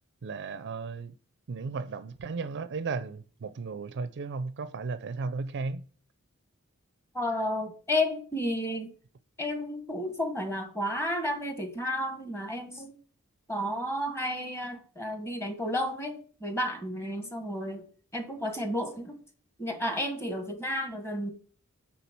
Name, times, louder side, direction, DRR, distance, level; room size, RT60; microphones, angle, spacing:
voice 1, 0.2-1.2 1.5-5.8, right 4 dB, 55° right, 0.4 m, -35 dB
voice 2, 7.1-8.9 9.4-12.9 13.5-17.8 18.1-19.2 19.6-21.3, left 1 dB, 10° left, 1.4 m, -32 dB
9.3 x 3.7 x 5.9 m
head